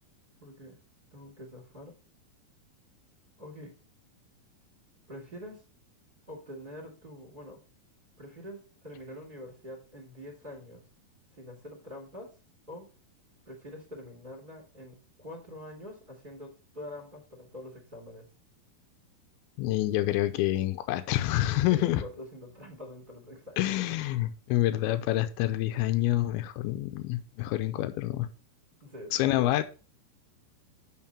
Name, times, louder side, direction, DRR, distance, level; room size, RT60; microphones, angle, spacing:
voice 1, 0.4-0.8 1.1-1.9 3.4-3.8 5.1-5.6 6.3-7.6 8.2-10.8 11.3-12.3 12.7-12.9 13.4-18.3 21.7-24.3 28.8-29.3, left 1 dB, 15° right, 0 dB, 2.1 m, -45 dB
voice 2, 19.6-22.0 23.6-28.3 29.1-29.6, left 15 dB, 80° left, 9 dB, 2.5 m, -27 dB
7.5 x 5.2 x 4.3 m, 0.37 s
omnidirectional pair, 4.5 m